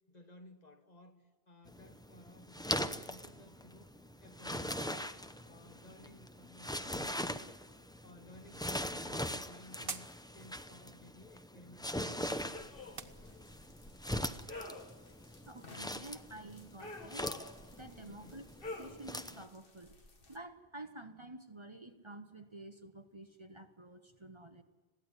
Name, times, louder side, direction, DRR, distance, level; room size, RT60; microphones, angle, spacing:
voice 1, 0.1-3.9 4.2-5.2 5.4-7.6 8.0-12.1 12.4-13.5 18.1-18.5, left 1 dB, 40° left, 1.5 m, -58 dB
sound 1, 1.7-19.4, left 1 dB, 5° left, 0.6 m, -41 dB
sound 2, 8.4-13.8, right 5 dB, 60° right, 1.3 m, -51 dB
sound 3, 12.5-20.4, left 2 dB, 60° left, 1.8 m, -50 dB
voice 2, 15.5-17.3 17.7-18.4 18.8-19.9 20.3-24.6, right 2 dB, 30° right, 1.1 m, -50 dB
21.0 x 16.0 x 9.9 m
omnidirectional pair, 1.0 m